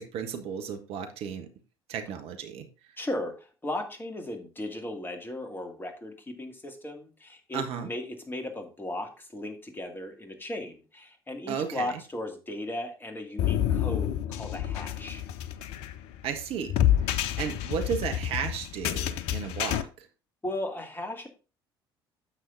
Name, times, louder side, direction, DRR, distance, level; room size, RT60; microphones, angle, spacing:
voice 1, 0.0-1.5 1.9-2.7 7.5-7.9 11.5-11.9 16.2-16.9 17.4-20.1, right 7 dB, 55° right, 6 dB, 1.2 m, -34 dB
voice 2, 3.0-3.3 3.6-15.2 20.4-21.3, left 1 dB, 15° left, 5 dB, 2.1 m, -36 dB
sound 1, 13.4-19.8, left 11 dB, 55° left, 0.6 m, -28 dB
10.0 x 7.6 x 2.6 m, 0.33 s
figure-of-eight pair, 60°, 12 cm